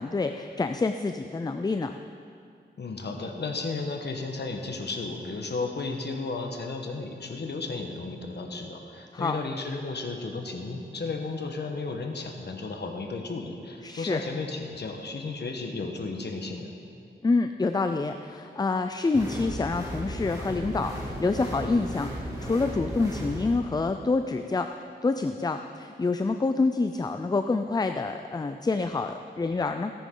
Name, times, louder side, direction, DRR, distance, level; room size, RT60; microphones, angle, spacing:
voice 1, 0.0-2.0 9.1-9.4 13.8-14.2 17.2-24.7 25.0-29.9, left 3 dB, 20° left, 7 dB, 0.4 m, -27 dB
voice 2, 2.8-16.7, left 3 dB, 65° left, 3 dB, 1.2 m, -34 dB
sound 1, 19.1-23.5, equal, 20° right, 2.3 m, -35 dB
17.0 x 10.0 x 3.8 m, 2.3 s
wide cardioid pair, 90°, 19 cm